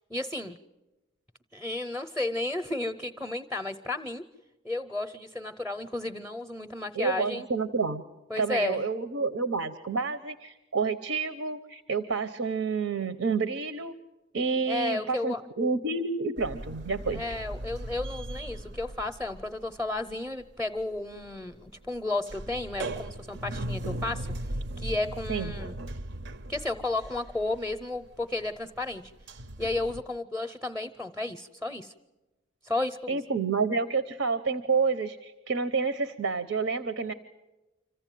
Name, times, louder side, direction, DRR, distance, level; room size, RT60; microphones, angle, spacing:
voice 1, 0.1-0.6 1.5-4.3 4.6-7.5 8.3-9.2 14.7-15.4 17.1-24.3 24.8-25.7 26.5-29.1 29.6-31.9 32.6-33.2, left 2 dB, ahead, 6 dB, 0.7 m, -33 dB
voice 2, 6.9-8.0 8.4-13.9 14.3-17.2 25.3-25.5 33.1-37.1, right 4 dB, 75° right, 11 dB, 0.9 m, -29 dB
sound 1, 16.4-20.1 20.4-30.0, right 1 dB, 55° right, 0.7 m, -38 dB
26.5 x 15.0 x 9.2 m, 1.1 s
head